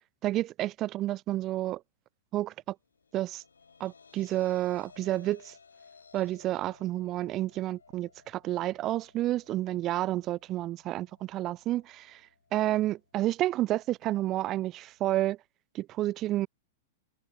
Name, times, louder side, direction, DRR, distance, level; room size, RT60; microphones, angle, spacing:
voice 1, 0.2-1.8 2.3-2.7 3.1-3.4 3.8-5.5 6.1-12.2 12.5-15.4 15.7-16.5, right 15 dB, 30° right, 0.3 m, -30 dB
sound 1, 2.8-15.2, left 5 dB, 75° left, 3.2 m, -59 dB
figure-of-eight pair, 100°, 0 cm